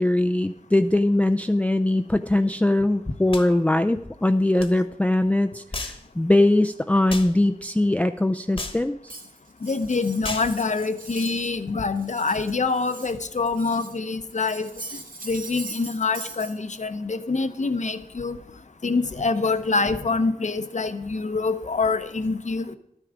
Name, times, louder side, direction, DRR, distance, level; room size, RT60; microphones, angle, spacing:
voice 1, 0.0-9.1, left 1 dB, 10° left, 7 dB, 0.4 m, -21 dB
sound 1, 3.3-3.5 4.6-4.7 5.7-6.0 7.1-7.3 8.6-8.8 10.2-10.5, left 2 dB, 40° left, 1.2 m, -33 dB
Cutlery silverware, 9.1-11.5 11.8-14.0 14.3-16.5, right 3 dB, 85° right, 2.2 m, -41 dB
voice 2, 9.6-14.7 15.2-18.4 18.8-22.7, left 4 dB, 60° left, 11 dB, 0.8 m, -25 dB
12.0 x 9.9 x 5.0 m, 0.80 s
wide cardioid pair, 75°, 14 cm